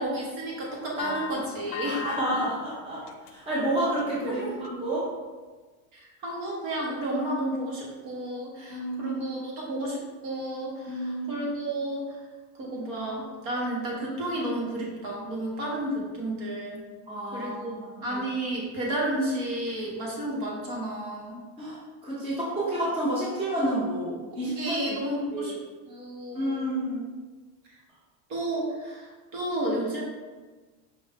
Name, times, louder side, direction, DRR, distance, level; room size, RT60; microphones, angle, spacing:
voice 1, 0.0-2.0 4.2-4.5 5.9-12.1 12.6-16.9 17.3-21.4 24.6-25.6 25.9-26.7 28.3-30.0, right 1 dB, 50° right, -3 dB, 1.4 m, -32 dB
sound 1, 1.0-2.5 2.9-3.5 3.9-4.2 4.6-4.7, left 7 dB, 75° left, 0.5 m, -37 dB
voice 2, 1.8-3.0 3.3-5.1 8.7-9.2 10.9-11.5 17.1-18.2 21.6-25.0 25.3-25.5 26.3-27.1, right 1 dB, 15° right, -8 dB, 0.8 m, -30 dB
5.3 x 2.6 x 3.6 m, 1.3 s
cardioid pair, 160°, 43 cm